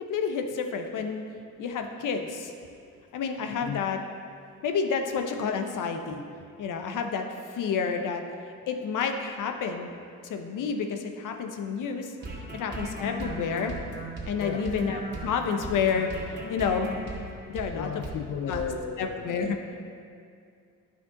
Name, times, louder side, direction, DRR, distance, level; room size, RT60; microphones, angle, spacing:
voice 1, 0.1-1.2 1.6-2.5 3.1-4.0 4.6-6.2 6.6-8.2 8.7-9.9 10.2-12.1 12.5-13.7 14.2-16.1 16.5-17.0 17.5-17.9 18.5-18.6 19.0-19.6, left 6 dB, 60° left, 5 dB, 0.9 m, -29 dB
sound 1, 12.2-17.7 18.0-18.2 18.5-18.7, right 1 dB, 30° right, 2.0 m, -37 dB
voice 2, 14.4-14.7 17.7-19.3 19.9-20.0, left 7 dB, 40° left, 5 dB, 0.5 m, -34 dB
9.7 x 6.3 x 3.9 m, 2.3 s
cardioid pair, 95°, 35 cm